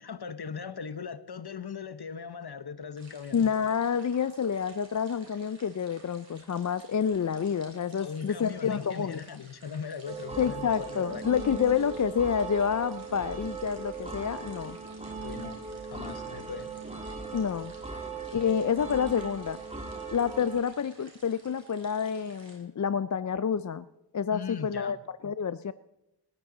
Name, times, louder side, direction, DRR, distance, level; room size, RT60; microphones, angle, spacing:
voice 1, 0.0-3.4 8.0-11.2 15.2-15.6 15.9-16.8 24.3-25.0, left 6 dB, 60° left, 13 dB, 0.9 m, -39 dB
sound 1, 2.9-22.6, right 2 dB, 80° right, 4.1 m, -56 dB
voice 2, 3.3-9.2 10.4-14.8 17.3-17.7 18.3-19.6 20.1-23.9 24.1-25.0 25.2-25.7, left 7 dB, 40° left, 15 dB, 0.4 m, -28 dB
sound 2, 10.0-20.6, right 4 dB, 15° right, 2.5 m, -39 dB
19.0 x 14.0 x 3.9 m, 0.90 s
wide cardioid pair, 55°, 45 cm